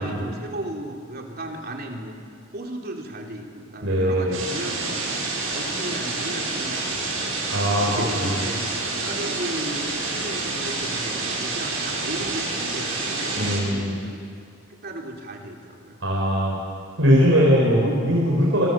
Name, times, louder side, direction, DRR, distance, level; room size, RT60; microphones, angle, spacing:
voice 1, 0.0-2.1 2.5-7.3 7.8-8.6 8.9-14.3 14.8-16.0, right 1 dB, 50° right, 1 dB, 3.4 m, -35 dB
voice 2, 3.8-4.4 7.5-8.4 13.4-13.9 16.0-16.6 17.0-18.7, equal, 70° right, -4 dB, 5.7 m, -20 dB
sound 1, 4.3-13.6, right 3 dB, 85° right, 7.7 m, -28 dB
26.5 x 24.5 x 7.5 m, 2.1 s
head